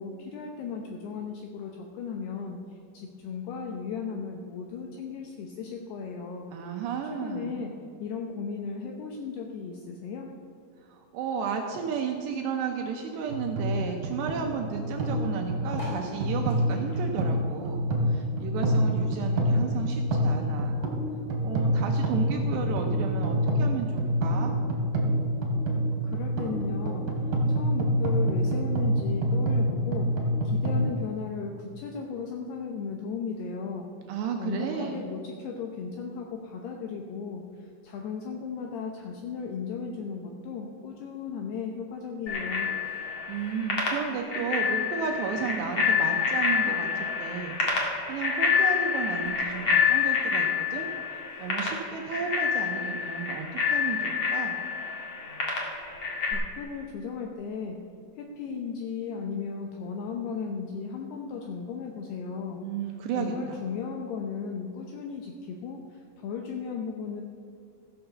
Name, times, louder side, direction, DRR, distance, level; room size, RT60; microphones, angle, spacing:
voice 1, 0.0-2.6 2.9-6.5 7.2-10.3 26.0-27.1 27.5-30.2 30.4-33.9 34.4-37.5 37.8-42.7 56.3-57.8 58.2-62.6 63.2-67.2, left 5 dB, 80° left, 2 dB, 2.4 m, -36 dB
voice 2, 6.5-7.7 10.8-20.8 21.4-24.6 34.1-35.1 43.3-54.6 62.6-63.6, right 6 dB, 80° right, 3 dB, 2.6 m, -33 dB
sound 1, 13.3-30.9, equal, 55° right, 2.8 m, -27 dB
sound 2, 15.7-18.5 18.8-20.3 20.8-20.9 21.1-21.2 21.4-21.8 22.6-22.7, right 1 dB, 25° left, 2.3 m, -45 dB
Bicycle bell, 42.3-56.3, left 6 dB, 50° left, 1.5 m, -28 dB
15.0 x 6.9 x 6.7 m, 2.4 s
omnidirectional pair, 5.7 m